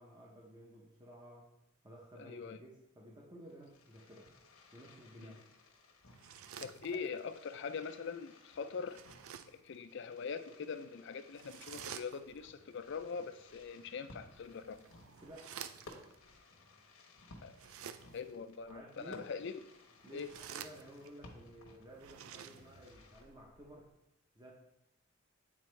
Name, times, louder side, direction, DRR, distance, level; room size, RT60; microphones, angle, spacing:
voice 1, 0.0-1.5 1.8-4.3 4.7-5.4 6.9-7.0 15.2-15.6 18.7-19.3 20.0-23.9 24.3-24.5, right 1 dB, 20° right, -3 dB, 0.7 m, -54 dB
voice 2, 2.2-2.6 5.2-5.3 6.6-9.0 9.6-14.8 17.4-17.5 18.1-19.6 20.1-20.3, left 5 dB, 55° left, 10 dB, 0.4 m, -42 dB
Fireworks, 3.4-23.2, left 2 dB, 90° left, 1.1 m, -60 dB
sound 1, 6.1-7.3 8.8-9.7 11.3-12.5 14.3-16.2 17.5-18.4 20.0-21.2 21.9-23.0, right 8 dB, 75° right, 0.4 m, -50 dB
sound 2, 12.2-14.8 15.2-15.8 16.2-16.7 17.2-17.9 18.6-19.2 20.2-20.8 21.9-23.9, equal, 55° right, 1.1 m, -68 dB
8.5 x 4.2 x 3.2 m, 0.85 s
head